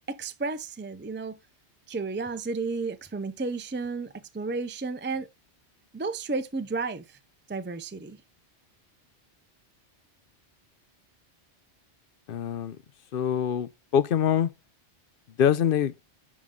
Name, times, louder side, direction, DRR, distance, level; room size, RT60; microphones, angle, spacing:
voice 1, 0.1-1.4 1.9-5.3 5.9-7.2 7.5-8.2, right 4 dB, 15° right, 0.4 m, -32 dB
voice 2, 12.3-12.8 13.1-14.5 15.4-15.9, left 8 dB, 60° left, 0.7 m, -24 dB
11.0 x 3.7 x 3.7 m
omnidirectional pair, 1.1 m